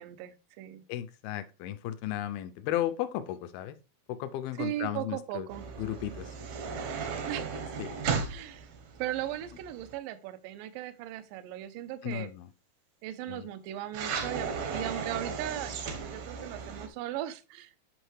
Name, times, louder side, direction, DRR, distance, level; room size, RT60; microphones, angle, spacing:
voice 1, 0.0-0.9 4.6-5.6 7.3-7.5 8.3-8.7 9.0-12.3 13.0-15.8 16.0-17.7, right 13 dB, 85° right, 2.0 m, -37 dB
voice 2, 0.9-3.8 4.1-5.5 5.8-6.3 7.8-7.9 12.0-12.5 13.3-13.5, left 12 dB, 80° left, 2.4 m, -34 dB
sound 1, 5.5-10.0 13.9-16.9, right 5 dB, 65° right, 1.7 m, -36 dB
8.9 x 5.5 x 3.2 m
omnidirectional pair, 4.5 m